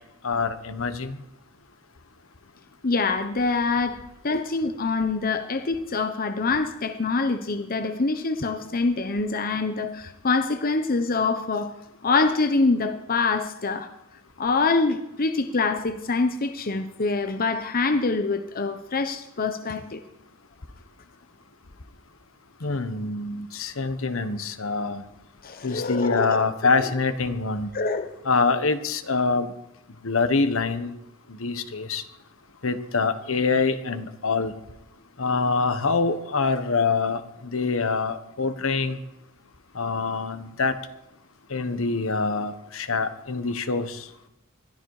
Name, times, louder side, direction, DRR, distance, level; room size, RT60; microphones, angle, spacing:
voice 1, 0.2-1.2 4.3-4.4 22.6-25.0 25.6-27.7 28.2-29.5 30.0-30.9 31.3-32.0 32.6-34.5 35.2-39.0 39.7-40.7 41.5-44.1, left 4 dB, 70° left, 10 dB, 1.3 m, -25 dB
voice 2, 2.8-4.0 4.2-11.7 12.0-13.9 14.4-20.0 25.4-26.4 26.8-26.9 27.7-28.1, left 3 dB, 45° left, 8 dB, 0.9 m, -25 dB
21.5 x 13.5 x 4.9 m, 0.86 s
head